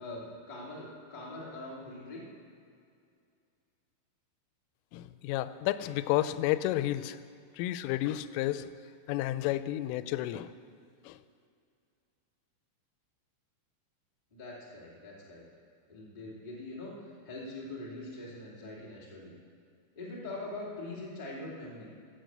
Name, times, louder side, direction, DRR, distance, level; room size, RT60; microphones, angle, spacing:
voice 1, 0.0-2.2 14.3-15.4 15.9-19.3 19.9-21.9, left 2 dB, 35° left, -5 dB, 0.6 m, -43 dB
voice 2, 4.9-7.2 7.6-8.7 9.1-10.5 11.0-11.2, left 14 dB, 90° left, 13 dB, 3.1 m, -31 dB
13.0 x 7.9 x 7.8 m, 2.4 s
omnidirectional pair, 5.6 m